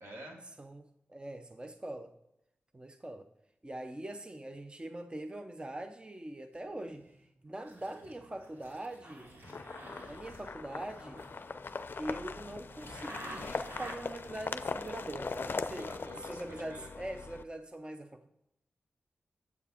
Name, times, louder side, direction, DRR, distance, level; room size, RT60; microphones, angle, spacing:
voice 1, 0.0-0.5 15.5-16.9, equal, 80° right, -2 dB, 2.3 m, -48 dB
voice 2, 0.6-2.1 2.7-3.3 3.6-9.3 10.1-11.2 12.0-18.3, right 1 dB, 20° right, 8 dB, 0.7 m, -43 dB
sound 1, 6.5-7.3 7.6-13.9, right 1 dB, 65° right, 3.1 m, -50 dB
sound 2, 9.4-17.4, left 4 dB, 55° left, 0.5 m, -40 dB
8.3 x 7.1 x 4.2 m, 0.82 s
cardioid pair, 55°, 4 cm